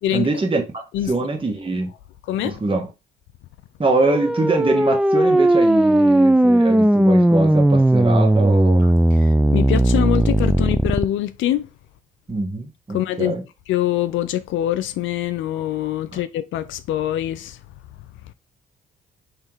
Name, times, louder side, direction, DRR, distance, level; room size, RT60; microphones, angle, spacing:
voice 1, 0.1-1.9 2.4-2.8 3.8-8.8 12.3-13.4 16.1-16.2, right 2 dB, 25° right, 1.4 m, -23 dB
voice 2, 2.3-2.6 8.8-8.9 9.2-11.7 12.9-13.3 13.7-17.6, left 12 dB, 75° left, 0.5 m, -24 dB
sound 1, 4.0-11.1, right 1 dB, 5° right, 0.4 m, -16 dB
3.7 x 3.2 x 4.5 m
supercardioid pair, 60°, 20 cm